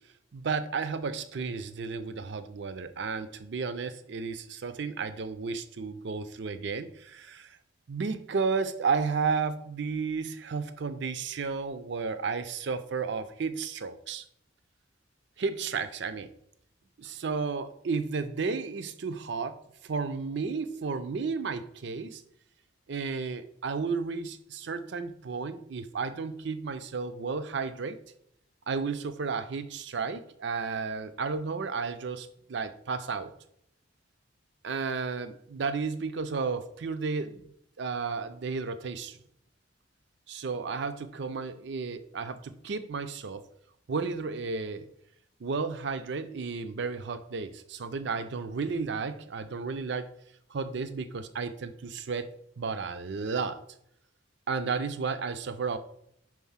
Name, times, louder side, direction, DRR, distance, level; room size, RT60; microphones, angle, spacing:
voice 1, 0.3-7.6 7.9-14.2 15.4-16.3 17.0-22.2 22.9-28.0 28.7-33.3 34.6-37.5 37.8-39.2 40.3-43.4 43.9-44.9 45.4-50.1 50.5-52.3 52.6-53.6 54.5-55.8, right 5 dB, 60° right, 11 dB, 0.5 m, -33 dB
4.8 x 3.9 x 5.6 m, 0.73 s
head